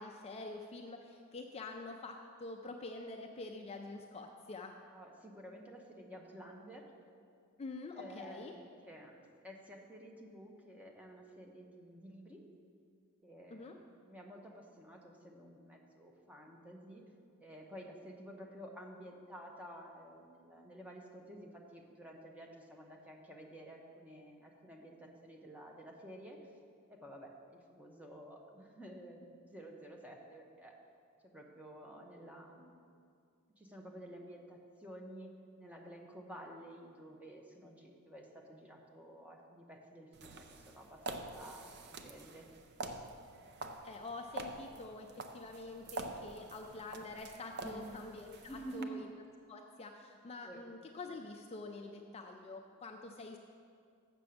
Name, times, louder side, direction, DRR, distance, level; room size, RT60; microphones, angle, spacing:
voice 1, 0.0-4.8 7.6-8.5 13.5-13.8 43.8-49.1 49.5-53.4, left 3 dB, 30° left, 3 dB, 0.4 m, -46 dB
voice 2, 4.9-6.9 8.0-9.2 9.4-12.4 13.2-17.0 17.4-26.4 26.9-30.7 31.2-32.8 33.6-41.7 42.0-42.5 47.5-47.9 48.4-48.9 50.4-50.6, right 1 dB, 5° right, 0 dB, 0.9 m, -51 dB
sound 1, 40.1-48.8, right 2 dB, 50° right, 0.5 m, -47 dB
7.1 x 6.8 x 6.4 m, 2.3 s
head